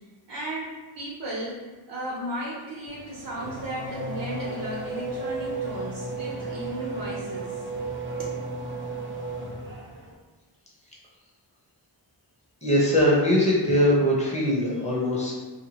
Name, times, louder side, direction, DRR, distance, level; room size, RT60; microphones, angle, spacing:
voice 1, 0.3-8.4, right 1 dB, 70° right, -6 dB, 0.7 m, -35 dB
Race car auto racing / Accelerating revving vroom, 2.9-10.1, right 3 dB, 25° right, 0.5 m, -34 dB
voice 2, 12.6-15.3, left 1 dB, 15° left, -5 dB, 0.8 m, -21 dB
2.8 x 2.2 x 2.9 m, 1.2 s
wide cardioid pair, 105°, 45 cm